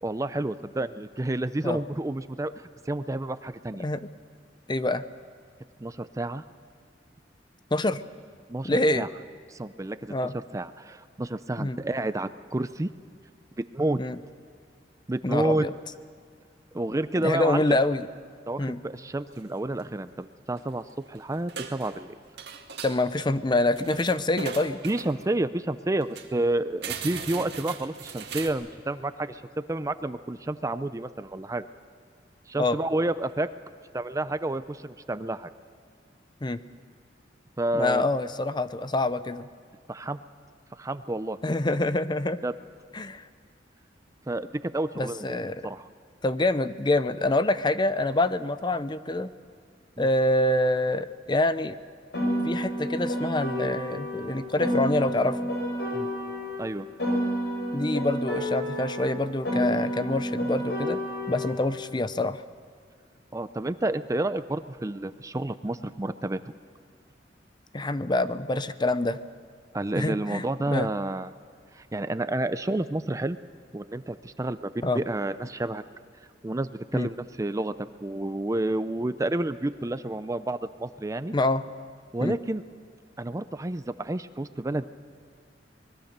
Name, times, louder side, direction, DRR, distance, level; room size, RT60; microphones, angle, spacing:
voice 1, 0.0-2.5 2.9-3.9 5.8-6.4 8.5-9.1 9.5-10.1 10.5-12.9 13.6-14.0 15.1-15.7 16.7-17.8 18.5-22.1 24.8-29.4 29.7-31.7 32.5-33.5 33.9-35.5 37.6-38.1 39.9-40.2 40.8-41.4 42.4-42.5 44.3-45.4 45.6-45.9 50.0-50.1 55.9-56.3 56.6-56.9 63.3-66.4 69.7-71.3 71.7-73.4 73.7-75.8 76.4-77.7 78.0-81.3 82.1-82.6 83.2-84.9, right 2 dB, 20° right, 12 dB, 0.5 m, -30 dB
voice 2, 4.7-5.0 7.7-8.0 8.6-9.1 10.1-10.3 11.6-11.8 14.0-14.2 15.2-15.7 17.2-18.0 18.6-18.8 22.8-24.8 32.6-32.8 36.4-36.6 37.7-39.5 41.4-42.4 42.9-43.2 45.0-45.7 46.2-49.3 50.0-51.8 52.4-55.5 57.7-61.0 61.3-62.4 67.7-69.2 70.0-70.9 74.8-75.0 76.9-77.1 81.3-81.6 82.2-82.4, left 2 dB, 25° left, 13 dB, 0.6 m, -26 dB
sound 1, 19.4-19.5 19.7-19.9 20.5-21.1 21.3-22.1 22.4-23.0 23.5-25.3 25.7-25.8 26.0-26.3 26.8-28.5, right 6 dB, 65° right, 2.1 m, -38 dB
Piano, 52.1-56.6 57.0-61.6, equal, 65° left, 6.1 m, -30 dB
24.5 x 21.0 x 6.7 m, 2.2 s
head